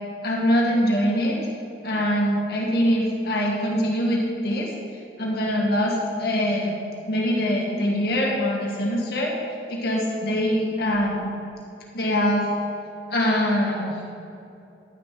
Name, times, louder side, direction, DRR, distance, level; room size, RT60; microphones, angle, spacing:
voice 1, 0.2-1.4 1.8-4.7 5.2-6.8 7.1-9.3 9.7-11.3 11.9-12.4 13.1-13.9, equal, 60° left, -2 dB, 2.0 m, -23 dB
11.0 x 7.3 x 4.9 m, 2.7 s
head